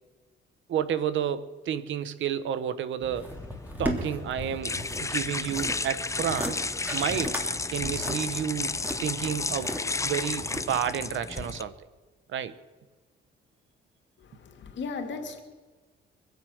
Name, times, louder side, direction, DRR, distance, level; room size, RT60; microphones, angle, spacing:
voice 1, 0.7-3.3 3.8-6.6 6.9-7.4 7.7-9.7 10.0-11.7 12.3-12.5, right 9 dB, 75° right, 14 dB, 1.1 m, -31 dB
sound 1, 3.0-11.6, left 3 dB, 15° left, 0.5 m, -33 dB
sound 2, 3.2-5.0 5.3-5.8 6.2-6.5 6.9-7.5 7.8-9.8 10.3-10.9 11.4-11.5, equal, 10° right, 3.2 m, -35 dB
voice 2, 14.2-15.4, left 4 dB, 65° left, 5 dB, 2.2 m, -36 dB
24.5 x 8.2 x 6.3 m, 1.3 s
cardioid pair, 90°, 20 cm